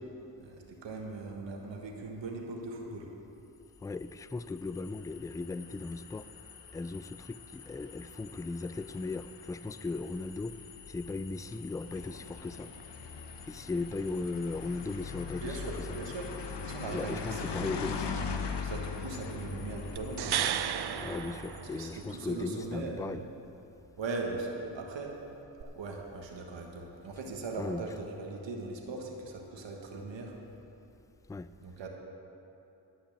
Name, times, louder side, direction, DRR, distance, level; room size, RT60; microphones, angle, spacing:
voice 1, 0.4-3.0 15.4-16.3 16.6-17.9 18.6-20.5 21.7-23.2 24.0-25.1 25.7-30.3 31.6-31.9, right 3 dB, 80° right, 0 dB, 1.5 m, -39 dB
sound 1, 3.8-22.3, left 5 dB, 70° left, 1.0 m, -42 dB
voice 2, 3.8-6.3 6.7-10.5 10.9-12.7 13.5-15.9 16.9-18.1 20.9-23.2 27.6-27.9 31.3-31.5, left 3 dB, 10° left, 14 dB, 0.3 m, -37 dB
sound 2, 20.0-22.2 25.6-25.7, right 9 dB, 60° right, 0.6 m, -34 dB
11.0 x 5.8 x 8.6 m, 3.0 s
cardioid pair, 50°, 44 cm